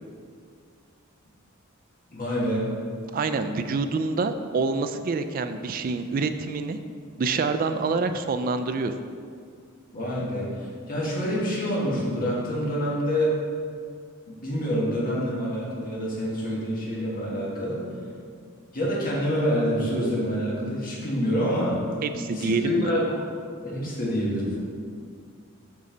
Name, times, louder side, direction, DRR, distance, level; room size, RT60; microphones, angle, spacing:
voice 1, 2.1-2.6 9.9-13.4 14.4-17.9 18.7-23.1 23.6-24.6, equal, 45° left, -5 dB, 1.5 m, -27 dB
voice 2, 3.1-6.8 7.2-8.9 10.2-10.3 22.0-22.9, right 4 dB, 45° right, 9 dB, 0.3 m, -26 dB
7.3 x 4.2 x 3.9 m, 2.1 s
head